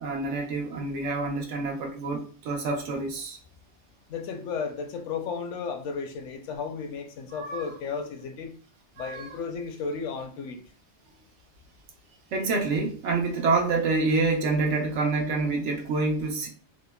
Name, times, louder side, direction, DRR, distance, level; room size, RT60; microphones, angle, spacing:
voice 1, 0.0-3.4 7.3-7.7 9.0-9.3 12.3-16.5, right 3 dB, 75° right, 1.0 m, -27 dB
voice 2, 4.1-8.5 9.0-10.6, left 5 dB, 80° left, 0.9 m, -34 dB
3.5 x 2.0 x 2.2 m
omnidirectional pair, 1.2 m